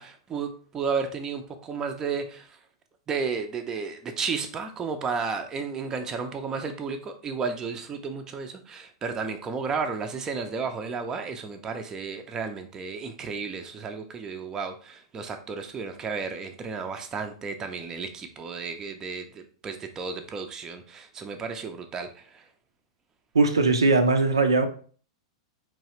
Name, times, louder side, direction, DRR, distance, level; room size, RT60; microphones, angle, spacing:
voice 1, 0.0-2.6 3.1-22.4, right 5 dB, 20° right, 0.5 m, -33 dB
voice 2, 23.3-24.7, right 3 dB, 70° right, 0.5 m, -20 dB
4.5 x 3.1 x 2.9 m
figure-of-eight pair, 95°, 3 cm